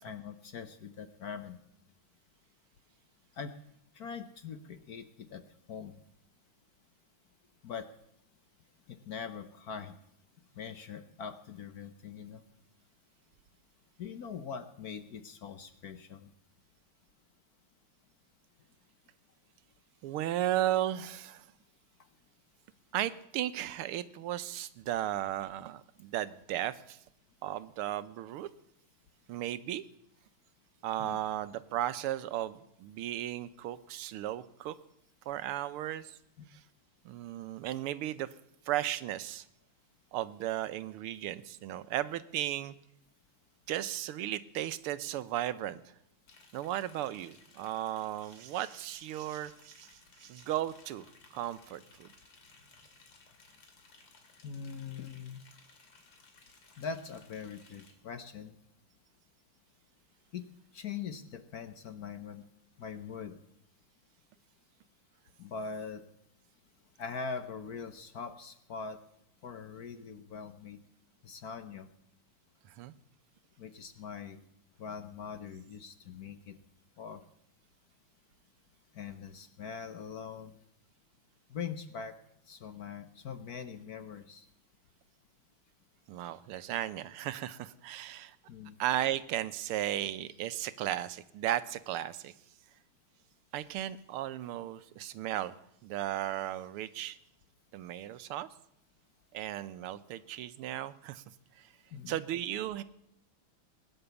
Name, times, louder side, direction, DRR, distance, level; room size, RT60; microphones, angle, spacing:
voice 1, 0.0-1.6 3.3-3.5 3.9-5.4 5.7-6.0 7.6-7.9 8.9-9.9 10.5-12.4 14.0-16.3 31.0-31.2 36.4-36.5 54.4-55.4 56.8-58.6 60.3-60.5 60.7-62.4 62.8-63.4 65.4-66.0 67.0-69.0 69.4-70.8 71.2-71.9 73.6-74.4 74.8-76.6 77.0-77.2 78.9-80.6 81.5-82.1 82.5-84.5 88.5-88.8 101.9-102.2, left 6 dB, 55° left, 10 dB, 1.2 m, -42 dB
voice 2, 20.0-21.4 22.9-27.0 27.4-28.5 29.3-29.8 30.8-34.7 35.3-36.2 36.5-36.6 37.0-38.3 38.7-39.4 40.1-42.7 43.7-45.8 46.5-49.9 50.2-51.0 51.3-52.1 72.7-72.9 86.1-88.4 88.8-92.3 93.5-95.6 95.8-97.2 97.7-98.5 99.3-101.2 101.6-101.7 102.1-102.8, right 13 dB, 90° right, 15 dB, 1.7 m, -35 dB
Liquid, 46.3-57.9, left 4 dB, 85° left, 3.3 m, -60 dB
20.0 x 10.0 x 7.0 m, 0.78 s
omnidirectional pair, 2.4 m